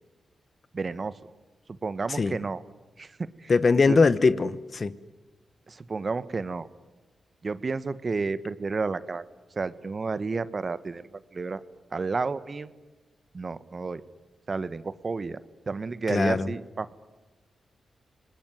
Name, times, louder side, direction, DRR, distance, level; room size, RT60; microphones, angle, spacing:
voice 1, 0.7-1.2 1.8-2.6 3.0-3.5 3.9-4.0 5.7-6.7 7.4-9.2 9.6-11.6 11.9-12.7 13.3-14.0 14.5-15.4 15.7-16.9, right 4 dB, 45° right, 14 dB, 1.3 m, -31 dB
voice 2, 3.5-5.0 16.1-16.5, left 4 dB, 50° left, 15 dB, 1.2 m, -21 dB
29.0 x 20.0 x 9.6 m, 1.2 s
supercardioid pair, 45°, 0 cm